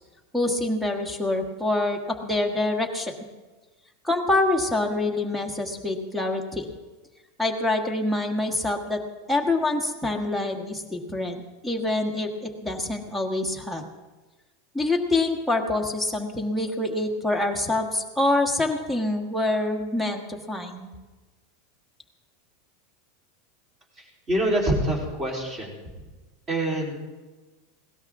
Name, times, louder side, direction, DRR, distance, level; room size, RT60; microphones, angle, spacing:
voice 1, 0.3-3.1 4.0-6.7 7.4-9.0 9.3-11.4 11.6-13.8 14.7-20.9, left 2 dB, ahead, 4 dB, 1.5 m, -26 dB
voice 2, 24.3-25.7 26.5-27.0, right 1 dB, 20° right, -1 dB, 3.8 m, -25 dB
19.5 x 18.0 x 3.7 m, 1.2 s
supercardioid pair, 175°, 0 cm